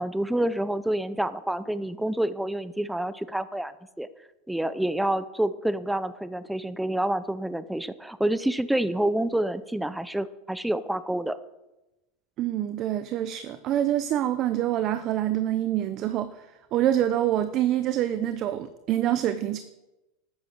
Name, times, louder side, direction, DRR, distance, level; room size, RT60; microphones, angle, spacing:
voice 1, 0.0-3.7 4.0-4.1 4.5-11.4, right 1 dB, 5° right, 14 dB, 0.6 m, -28 dB
voice 2, 12.4-16.5 16.7-19.6, right 12 dB, 40° right, 11 dB, 0.8 m, -26 dB
13.0 x 9.7 x 7.3 m, 0.99 s
supercardioid pair, 145°, 0 cm